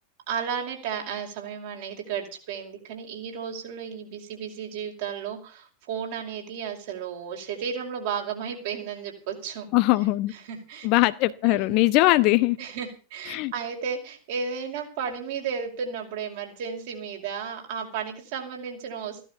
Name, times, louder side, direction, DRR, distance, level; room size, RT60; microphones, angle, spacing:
voice 1, 0.3-9.7 10.4-10.9 11.4-11.8 12.6-19.3, right 7 dB, 50° right, 5.5 m, -33 dB
voice 2, 9.7-10.3 10.8-12.6 13.3-13.5, left 19 dB, 45° left, 1.0 m, -21 dB
16.0 x 12.5 x 7.0 m
figure-of-eight pair, 90°, 0 cm